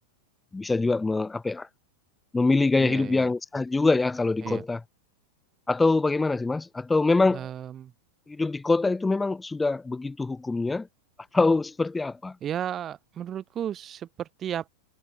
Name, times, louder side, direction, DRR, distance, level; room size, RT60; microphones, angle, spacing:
voice 1, 0.5-1.7 2.3-4.8 5.7-7.5 8.3-10.9 11.3-12.4, left 3 dB, 10° left, 0.6 m, -24 dB
voice 2, 2.8-3.3 4.4-4.6 7.3-7.9 12.4-14.7, right 10 dB, 25° right, 1.1 m, -34 dB
figure-of-eight pair, 90°, 0 cm